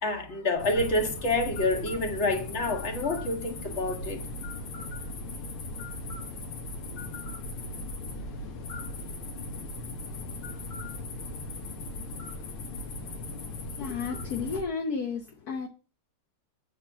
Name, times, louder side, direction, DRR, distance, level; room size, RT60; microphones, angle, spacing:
voice 1, 0.0-4.2, left 2 dB, 35° left, 1.7 m, -28 dB
sound 1, 0.6-14.6, left 2 dB, 85° left, 2.3 m, -38 dB
voice 2, 13.8-15.7, left 5 dB, 60° left, 1.1 m, -32 dB
8.2 x 5.1 x 5.9 m
omnidirectional pair, 2.4 m